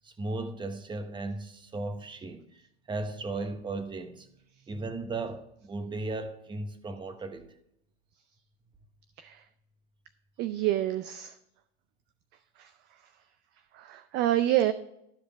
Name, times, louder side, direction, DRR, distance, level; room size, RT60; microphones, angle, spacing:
voice 1, 0.0-4.3 4.7-7.5, right 2 dB, 15° right, 9 dB, 1.0 m, -36 dB
voice 2, 10.4-11.3 12.6-12.7 13.7-14.7, right 13 dB, 30° right, 12 dB, 0.5 m, -27 dB
13.0 x 5.1 x 4.8 m, 0.78 s
hypercardioid pair, 110°, 34 cm